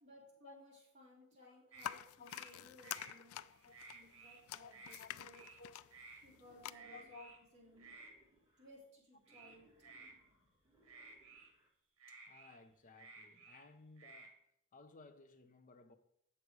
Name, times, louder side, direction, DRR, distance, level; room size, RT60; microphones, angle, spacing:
voice 1, 0.0-3.4 3.6-5.4 6.2-7.9 8.6-9.7, equal, 30° right, 3.4 m, -61 dB
voice 2, 1.4-4.1 4.6-5.8 6.9-7.4 12.1-14.4 14.7-16.0, left 4 dB, 35° left, 0.6 m, -60 dB
sound 1, 1.7-2.0 2.2-3.1 3.5-4.4 4.7-5.0 5.3-5.6 5.9-6.2 6.7-7.4 7.8-8.1 9.3-10.1 10.8-11.5 12.0-13.6 14.0-14.3, right 3 dB, 80° right, 1.5 m, -56 dB
sound 2, 1.8-6.7, left 12 dB, 75° left, 0.3 m, -48 dB
Wild animals, 6.2-8.7 9.2-11.7, right 1 dB, 15° right, 1.9 m, -71 dB
7.5 x 6.7 x 4.7 m
head